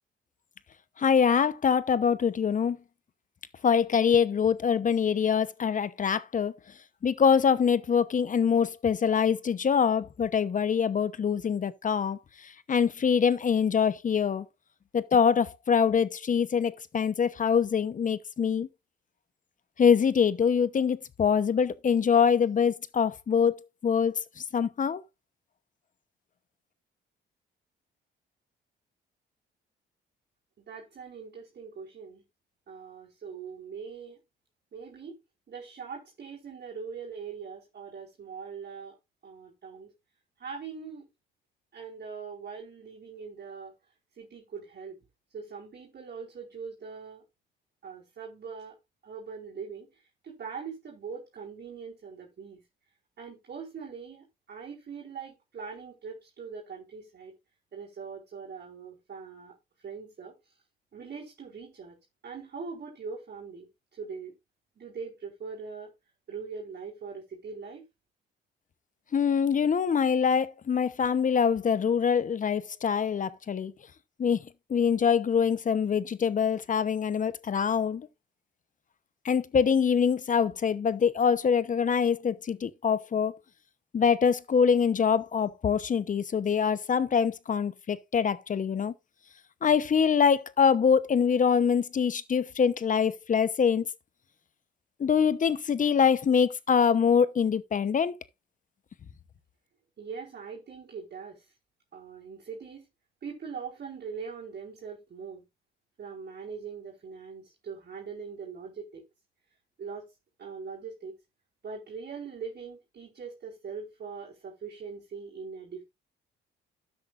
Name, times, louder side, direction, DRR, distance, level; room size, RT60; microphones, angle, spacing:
voice 1, 1.0-2.8 3.6-6.5 7.0-14.5 14.9-18.7 19.8-23.5 23.8-25.0 69.1-73.7 74.2-74.4 74.7-78.1 79.2-83.4 83.9-88.9 89.6-93.9 95.0-98.2, left 7 dB, 40° left, 0.9 m, -24 dB
voice 2, 30.6-32.2 32.7-34.2 34.7-35.1 35.5-38.9 39.2-39.9 40.4-41.1 41.7-43.7 44.2-45.0 45.3-47.2 47.8-48.8 49.0-52.6 53.2-57.3 57.7-59.6 59.8-60.5 60.9-62.0 62.2-64.4 64.8-65.9 66.3-67.8 100.0-101.5 101.9-102.9 103.2-105.4 106.0-109.0 109.8-110.1 110.4-111.2 111.6-115.8, right 5 dB, 55° right, 4.7 m, -42 dB
12.5 x 8.5 x 2.5 m
cardioid pair, 90°, 20 cm